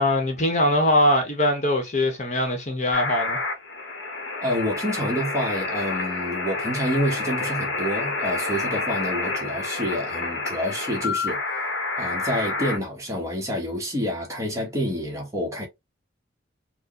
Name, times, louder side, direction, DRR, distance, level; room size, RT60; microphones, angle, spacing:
voice 1, 0.0-3.4, left 1 dB, 35° left, 1.0 m, -22 dB
sound 1, 2.9-12.8, left 3 dB, 80° left, 1.0 m, -29 dB
voice 2, 4.4-11.4 12.0-15.7, equal, 15° right, 1.1 m, -28 dB
4.5 x 2.2 x 2.9 m
head